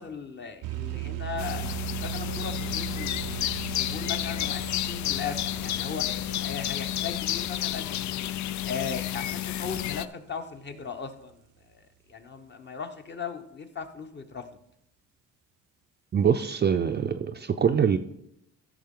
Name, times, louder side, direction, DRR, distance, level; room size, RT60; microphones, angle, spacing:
voice 1, 0.0-8.3 8.6-11.8 12.1-14.5, left 6 dB, 35° left, 1.0 m, -38 dB
sound 1, 0.6-10.1, right 19 dB, 85° right, 0.5 m, -39 dB
sound 2, 1.4-10.1, left 13 dB, 70° left, 0.4 m, -31 dB
voice 2, 16.1-18.0, right 7 dB, 35° right, 0.5 m, -24 dB
13.5 x 6.0 x 3.7 m
cardioid pair, 90°, 30 cm